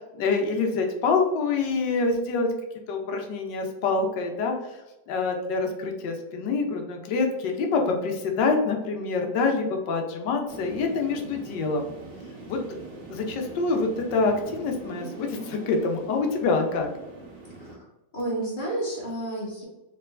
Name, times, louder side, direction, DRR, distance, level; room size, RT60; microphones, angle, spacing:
voice 1, 0.0-2.5 2.9-4.8 5.1-11.9 12.5-12.6 13.1-16.9, left 4 dB, 70° left, 3 dB, 1.4 m, -26 dB
sound 1, 10.5-17.8, right 2 dB, 75° right, 1.8 m, -42 dB
voice 2, 18.1-19.6, right 1 dB, 30° left, -4 dB, 1.1 m, -31 dB
4.5 x 3.9 x 2.5 m, 1.0 s
omnidirectional pair, 2.1 m